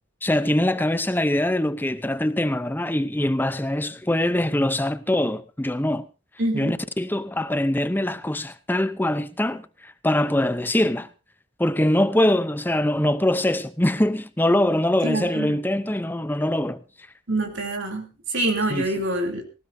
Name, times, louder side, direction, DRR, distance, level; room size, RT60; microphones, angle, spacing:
voice 1, 0.2-6.1 6.5-11.1 11.6-16.8 18.7-18.9, left 1 dB, 10° left, 0.6 m, -23 dB
voice 2, 6.4-6.8 15.0-15.6 17.3-19.4, right 2 dB, 65° right, 3.1 m, -26 dB
18.5 x 18.0 x 2.7 m
head